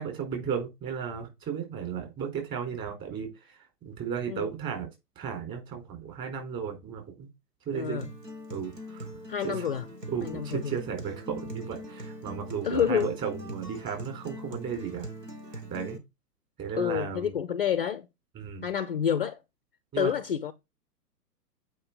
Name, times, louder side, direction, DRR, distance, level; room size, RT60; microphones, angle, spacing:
voice 1, 0.0-4.9 5.2-7.3 7.7-8.1 8.5-9.1 9.4-9.6 10.1-15.1 15.5-16.0 16.6-17.3 18.3-18.7 19.9-20.1, right 7 dB, 25° right, 4.2 m, -35 dB
voice 2, 7.7-8.1 9.3-9.9 10.2-10.8 12.6-13.2 16.7-18.1 18.6-19.4 20.0-20.5, left 8 dB, 35° left, 0.5 m, -28 dB
Acoustic guitar, 8.0-16.0, equal, 80° right, 2.0 m, -42 dB
8.6 x 5.3 x 5.3 m
figure-of-eight pair, 120°, 49 cm